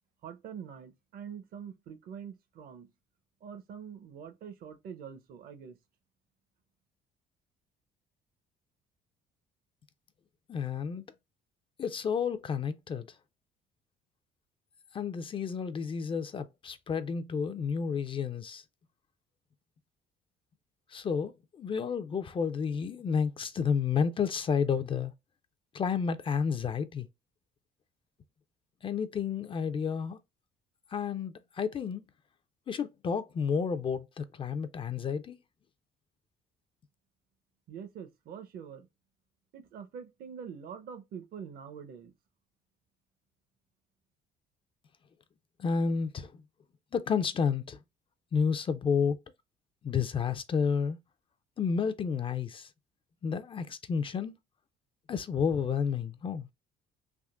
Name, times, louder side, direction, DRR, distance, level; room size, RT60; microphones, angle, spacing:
voice 1, 0.2-2.9 3.4-5.8 37.7-38.9 39.5-42.1, right 7 dB, 60° right, 0.7 m, -45 dB
voice 2, 10.5-11.0 11.8-13.1 14.9-18.6 20.9-25.1 25.7-27.1 28.8-30.2 30.9-32.0 32.7-35.4 45.6-46.4 46.9-47.8 48.3-49.2 49.8-51.0 51.6-52.7 53.2-54.4 55.1-56.5, left 6 dB, 30° left, 0.4 m, -31 dB
3.6 x 2.5 x 2.3 m
cardioid pair, 110°, 17 cm